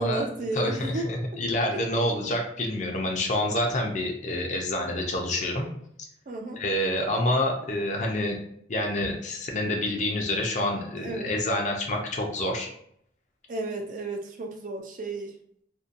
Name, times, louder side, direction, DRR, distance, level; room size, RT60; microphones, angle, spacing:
voice 1, 0.0-1.4 1.7-1.8 6.3-6.6 11.0-11.3 13.5-15.4, right 2 dB, 45° right, 3 dB, 0.4 m, -33 dB
voice 2, 0.5-5.7 6.6-8.4 8.7-12.7, left 1 dB, 40° left, 1 dB, 0.5 m, -27 dB
2.6 x 2.2 x 2.5 m, 0.68 s
head